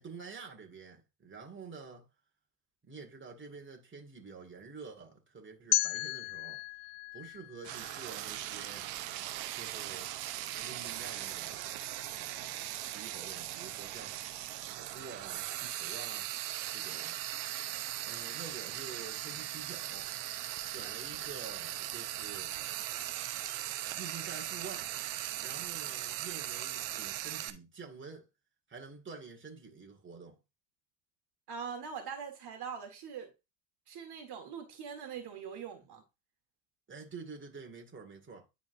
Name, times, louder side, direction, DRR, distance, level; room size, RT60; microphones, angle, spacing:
voice 1, 0.0-2.1 2.8-6.6 7.1-8.9 9.6-10.1 10.5-11.7 12.1-14.2 14.7-16.3 16.7-17.2 18.0-20.1 20.6-22.5 23.6-25.0 25.4-28.3 28.7-30.4 36.9-38.5, right 4 dB, 25° right, 2.2 m, -48 dB
sound 1, 5.7-8.7, left 20 dB, 65° left, 0.5 m, -35 dB
Frying (food), 7.6-27.5, right 14 dB, 70° right, 1.0 m, -39 dB
voice 2, 31.5-33.3 33.9-36.0, right 6 dB, 55° right, 2.0 m, -42 dB
10.5 x 4.1 x 2.7 m
hypercardioid pair, 80°, 48 cm